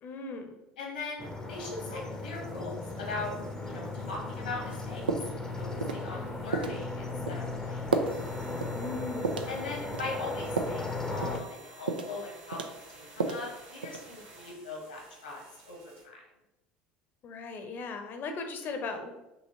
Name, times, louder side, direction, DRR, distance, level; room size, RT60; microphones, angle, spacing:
voice 1, 0.0-0.5 8.7-9.4 17.2-19.1, left 3 dB, 45° left, 5 dB, 0.8 m, -37 dB
voice 2, 0.8-3.4 3.7-5.0 5.6-7.9 9.5-15.8 16.0-16.2, left 3 dB, 85° left, -1 dB, 1.4 m, -40 dB
sound 1, 1.2-11.4, left 3 dB, 10° left, 0.7 m, -37 dB
sound 2, 1.5-16.0, right 3 dB, 55° right, 1.6 m, -54 dB
sound 3, 4.7-4.8 5.1-5.4 5.8-6.1 6.5-6.8 7.3-7.4 7.9-8.2 8.6-8.8 9.2-9.5 9.9-10.8 11.2-11.5 11.9-12.2 12.5-13.5 13.8-14.2, right 4 dB, 85° right, 0.4 m, -32 dB
5.6 x 3.0 x 3.0 m, 0.95 s
hypercardioid pair, 70°, 5 cm